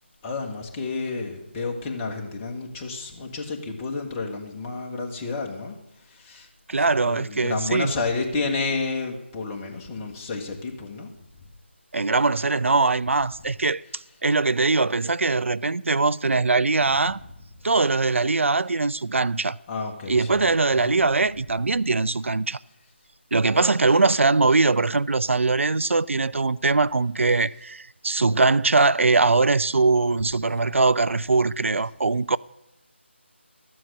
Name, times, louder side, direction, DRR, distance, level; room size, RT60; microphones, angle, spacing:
voice 1, 0.2-5.8 6.1-6.5 7.0-11.1 16.9-17.0 19.7-20.4 20.7-21.0, left 3 dB, 15° left, 1.2 m, -30 dB
voice 2, 6.7-7.9 11.9-17.2 17.6-19.6 20.1-22.6 23.3-32.4, right 3 dB, 80° right, 0.3 m, -21 dB
13.0 x 7.6 x 6.4 m
figure-of-eight pair, 160°, 7 cm